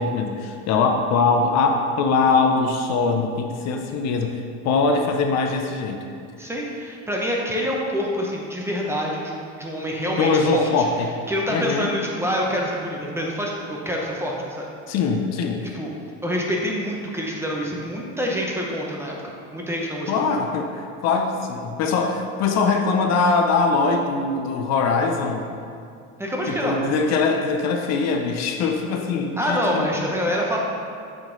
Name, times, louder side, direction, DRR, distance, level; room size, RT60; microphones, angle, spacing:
voice 1, 0.0-6.0 10.1-11.1 11.5-11.9 14.9-15.6 20.1-25.5 26.5-29.9, left 4 dB, 55° left, 4 dB, 0.6 m, -22 dB
voice 2, 6.4-10.7 11.3-14.7 15.7-15.9 16.2-19.1 19.5-20.1 26.2-26.8 29.4-30.6, equal, 10° right, -2 dB, 0.7 m, -26 dB
7.2 x 3.8 x 3.8 m, 2.4 s
cardioid pair, 135°, 32 cm